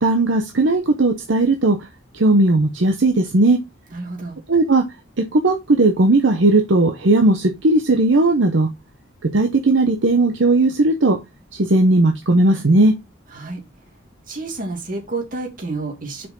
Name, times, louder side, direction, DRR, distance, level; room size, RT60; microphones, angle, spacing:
voice 1, 0.0-1.8 2.1-3.6 4.5-4.8 5.3-8.7 9.3-11.2 11.5-12.9, right 2 dB, 70° right, 0.8 m, -16 dB
voice 2, 3.9-4.4 13.3-13.6 14.3-16.3, right 3 dB, 45° right, 2.3 m, -29 dB
5.8 x 5.2 x 3.8 m
head